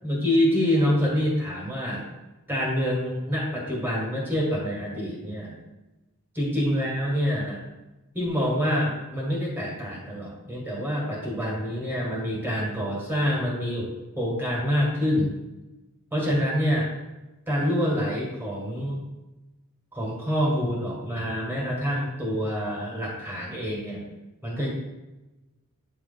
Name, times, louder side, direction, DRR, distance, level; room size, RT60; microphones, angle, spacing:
voice 1, 0.0-2.1 2.5-5.6 6.4-7.6 8.1-15.3 16.1-16.9 17.5-19.0 19.9-24.0 24.4-24.7, equal, 10° right, -4 dB, 1.8 m, -26 dB
8.9 x 3.2 x 4.0 m, 1.0 s
head